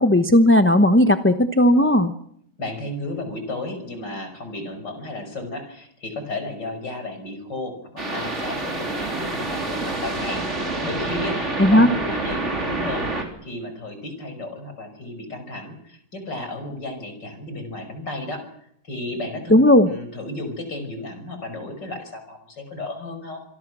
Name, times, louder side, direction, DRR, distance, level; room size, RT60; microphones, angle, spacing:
voice 1, 0.0-2.1 11.6-11.9 19.5-19.9, left 1 dB, 10° left, 8 dB, 0.7 m, -15 dB
voice 2, 2.6-10.4 10.8-18.4 18.8-23.4, left 2 dB, 85° left, 7 dB, 6.2 m, -33 dB
sound 1, 8.0-13.2, right 2 dB, 40° right, 4.0 m, -27 dB
27.0 x 23.0 x 6.2 m, 0.70 s
omnidirectional pair, 1.9 m